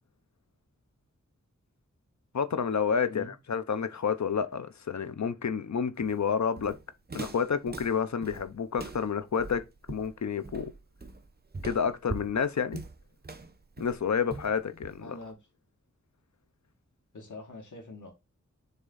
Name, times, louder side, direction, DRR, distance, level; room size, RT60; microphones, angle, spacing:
voice 1, 2.3-6.8 7.1-10.7 11.6-12.8 13.8-15.0, left 6 dB, 70° left, 0.7 m, -29 dB
Walk footsteps, 6.0-15.3, right 3 dB, 35° right, 0.8 m, -42 dB
voice 2, 14.7-15.4 17.1-18.1, left 2 dB, 85° left, 2.0 m, -44 dB
6.7 x 3.6 x 3.9 m
wide cardioid pair, 75°, 30 cm